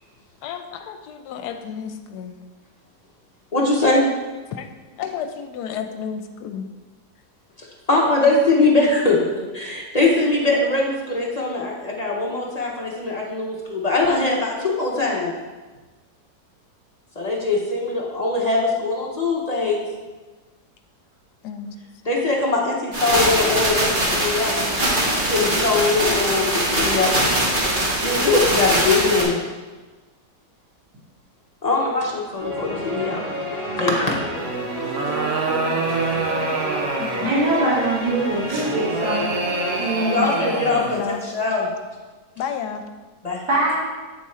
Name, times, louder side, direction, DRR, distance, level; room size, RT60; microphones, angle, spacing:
voice 1, 0.4-2.4 4.5-4.7 5.0-6.7 21.4-21.7 25.3-25.6 37.0-37.3 40.1-41.2 42.4-42.8, left 7 dB, 80° left, 6 dB, 1.2 m, -32 dB
voice 2, 3.5-4.1 7.6-15.3 17.2-19.9 22.0-24.6 25.1-27.1 28.0-29.4 31.6-33.2 33.8-34.1 40.0-41.7 43.2-43.4, left 3 dB, 35° left, -3 dB, 0.7 m, -21 dB
sound 1, 22.9-29.2, right 1 dB, 35° right, 1.3 m, -21 dB
sound 2, 32.4-40.9, right 1 dB, 10° right, 1.8 m, -30 dB
sound 3, 34.6-37.5 38.5-41.1, right 3 dB, 65° right, 1.2 m, -26 dB
voice 3, 37.2-39.3 39.8-40.3 43.5-43.8, right 2 dB, 80° right, -7 dB, 2.2 m, -22 dB
8.3 x 3.6 x 4.3 m, 1.3 s
omnidirectional pair, 1.7 m